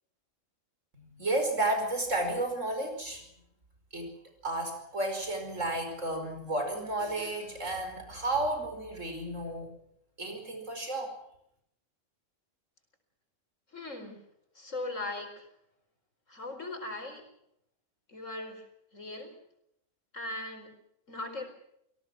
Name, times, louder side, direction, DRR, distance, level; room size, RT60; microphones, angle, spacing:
voice 1, 0.9-3.3 3.9-4.1 4.4-9.7 10.2-11.2, right 2 dB, 70° right, 5 dB, 5.6 m, -32 dB
voice 2, 13.7-14.2 14.5-15.5 16.3-17.2 18.1-18.6 18.9-19.4 20.1-20.7 21.1-21.5, left 2 dB, 75° left, 5 dB, 4.9 m, -39 dB
27.0 x 18.0 x 6.2 m, 0.74 s
omnidirectional pair, 1.3 m